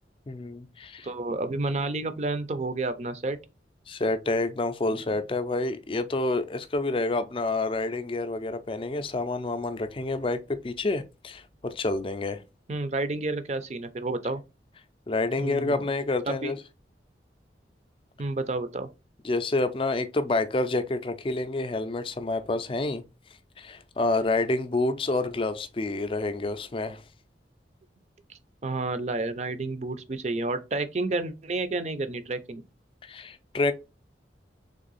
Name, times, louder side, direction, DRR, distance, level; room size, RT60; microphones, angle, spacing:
voice 1, 0.3-1.1 3.9-12.4 15.1-16.6 19.2-23.0 23.6-27.0 33.0-33.7, left 2 dB, 30° left, 0.4 m, -28 dB
voice 2, 1.0-3.4 4.9-5.0 12.7-14.4 15.4-15.8 16.3-16.5 18.2-18.9 28.6-32.6, right 2 dB, 35° right, 0.5 m, -30 dB
3.6 x 3.3 x 4.0 m
head